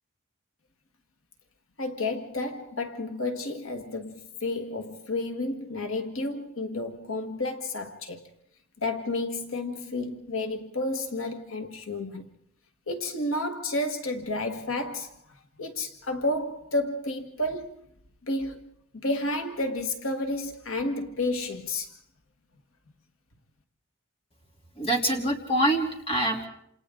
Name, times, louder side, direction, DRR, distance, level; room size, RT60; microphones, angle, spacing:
voice 1, 1.8-8.2 8.8-12.3 12.9-15.1 15.6-17.9 18.2-18.7 18.9-22.0, left 2 dB, 75° left, 1.7 m, -31 dB
voice 2, 24.8-26.5, right 1 dB, 25° left, 3.3 m, -25 dB
28.5 x 28.0 x 3.8 m
head